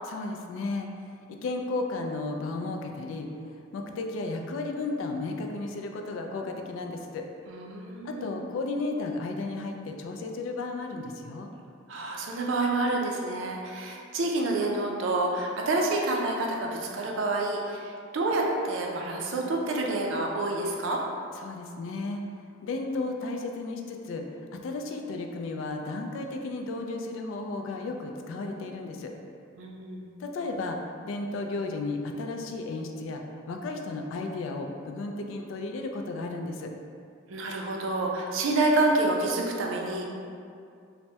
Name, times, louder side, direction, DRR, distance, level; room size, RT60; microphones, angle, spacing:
voice 1, 0.1-3.3 3.7-7.2 8.0-11.5 21.3-24.3 24.5-29.1 30.2-30.8 31.0-33.2 33.5-36.7, left 3 dB, 75° left, 3 dB, 0.3 m, -34 dB
voice 2, 7.5-8.3 11.9-21.0 29.6-30.1 37.3-40.1, right 2 dB, 70° right, 0 dB, 0.4 m, -28 dB
3.3 x 2.1 x 2.7 m, 2.3 s
head